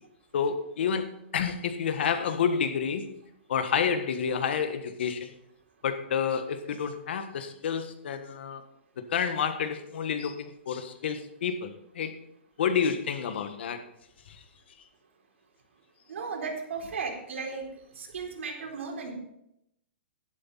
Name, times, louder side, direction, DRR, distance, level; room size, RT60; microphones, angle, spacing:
voice 1, 0.3-3.1 3.5-5.3 5.8-8.6 9.1-12.1 12.6-13.8, left 7 dB, 60° left, 9 dB, 1.4 m, -29 dB
voice 2, 16.1-17.7 17.9-19.1, right 5 dB, 80° right, 0 dB, 3.9 m, -35 dB
11.5 x 11.5 x 4.1 m, 0.78 s
hypercardioid pair, 170°, 7 cm